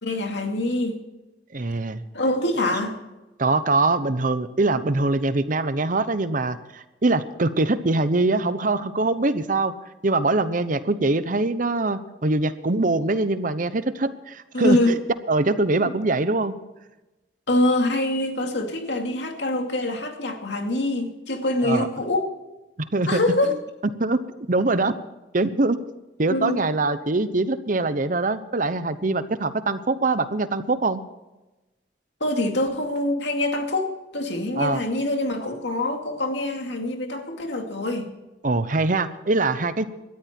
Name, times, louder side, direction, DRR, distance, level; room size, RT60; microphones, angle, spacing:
voice 1, 0.0-1.0 2.1-3.0 14.5-14.9 17.5-22.3 23.1-23.5 26.3-26.6 32.2-38.1, left 1 dB, 75° left, 4 dB, 2.4 m, -24 dB
voice 2, 1.5-2.0 3.4-9.7 10.0-15.0 15.3-16.6 21.6-21.9 22.9-23.2 24.0-24.2 24.5-25.0 25.3-25.8 26.2-31.0 34.6-34.8 38.4-39.8, right 2 dB, 45° right, 13 dB, 0.8 m, -23 dB
18.5 x 13.0 x 4.5 m, 1.0 s
head